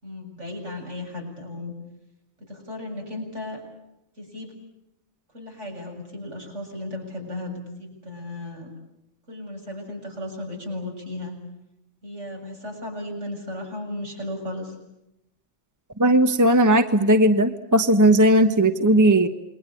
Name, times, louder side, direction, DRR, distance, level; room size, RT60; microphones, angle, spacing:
voice 1, 0.0-1.8 2.4-3.6 4.2-4.5 5.3-8.7 9.3-11.4 12.0-14.7, left 1 dB, 70° right, 1 dB, 7.6 m, -35 dB
voice 2, 16.0-19.3, right 1 dB, 15° right, 8 dB, 1.2 m, -17 dB
29.0 x 22.0 x 8.6 m, 0.85 s
omnidirectional pair, 1.3 m